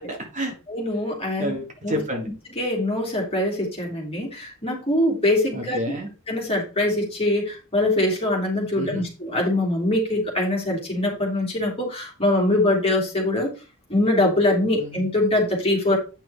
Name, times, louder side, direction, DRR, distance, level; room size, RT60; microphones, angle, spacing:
voice 1, 0.1-0.5 1.4-2.3 5.5-6.1 8.8-9.1 14.8-15.0, equal, 35° right, 2 dB, 1.9 m, -29 dB
voice 2, 0.7-1.5 1.8-2.0 2.6-5.8 6.3-13.5 13.9-16.0, left 1 dB, 25° left, -1 dB, 3.1 m, -23 dB
9.1 x 5.9 x 3.5 m, 0.32 s
head